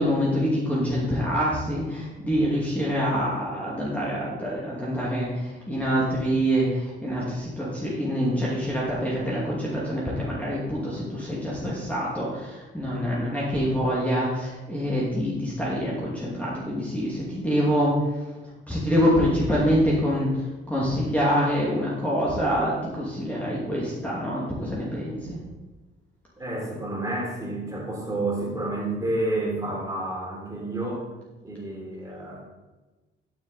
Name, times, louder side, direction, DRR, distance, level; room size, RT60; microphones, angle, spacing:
voice 1, 0.0-17.9 18.7-20.3 20.7-25.4, equal, 5° left, -6 dB, 2.5 m, -25 dB
voice 2, 26.4-31.1 31.4-32.4, right 2 dB, 15° right, -3 dB, 3.6 m, -30 dB
11.5 x 6.6 x 4.2 m, 1.2 s
cardioid pair, 90°, 20 cm